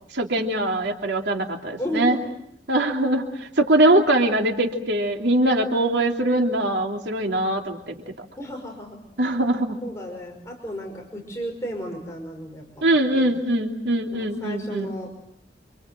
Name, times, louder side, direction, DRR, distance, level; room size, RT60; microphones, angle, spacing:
voice 1, 0.1-2.2 2.7-8.0 9.2-9.8 12.8-14.9, right 1 dB, 85° right, 2 dB, 3.0 m, -22 dB
voice 2, 1.8-2.3 8.4-9.0 9.8-12.9 13.1-13.3 14.1-15.1, equal, 15° left, 1 dB, 5.3 m, -33 dB
28.5 x 27.0 x 7.7 m, 0.74 s
head